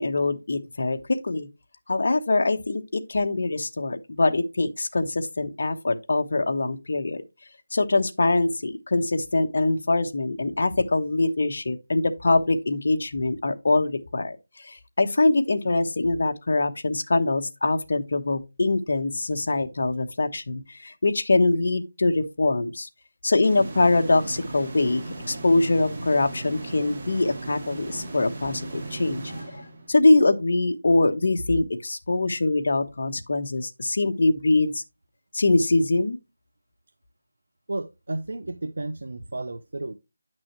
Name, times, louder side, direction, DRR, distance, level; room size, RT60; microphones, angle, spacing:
voice 1, 0.0-1.5 1.9-7.2 7.7-14.4 14.6-22.9 23.2-34.8 35.3-36.2, left 2 dB, 55° left, 1.1 m, -23 dB
sound 1, 23.4-30.2, right 2 dB, 35° right, 2.3 m, -37 dB
voice 2, 37.7-39.9, right 2 dB, 75° right, 0.7 m, -32 dB
10.0 x 6.1 x 3.0 m
figure-of-eight pair, 175°, 0 cm